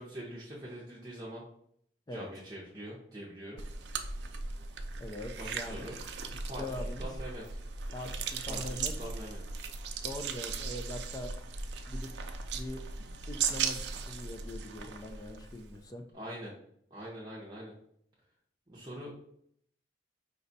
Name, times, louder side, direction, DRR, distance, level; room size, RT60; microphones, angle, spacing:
voice 1, 0.0-1.4 2.1-3.6 5.4-6.0 6.4-7.5 8.5-9.4 16.1-16.5 16.9-17.7 18.7-19.1, equal, 20° right, -5 dB, 0.7 m, -43 dB
sound 1, 3.6-15.8, right 5 dB, 65° right, 0.5 m, -38 dB
voice 2, 5.0-5.9 6.6-7.1 7.9-8.9 10.0-11.3 11.9-12.1 12.5-12.8 13.3-16.0, left 1 dB, 20° left, 5 dB, 0.4 m, -42 dB
5.1 x 2.3 x 3.9 m, 0.69 s
head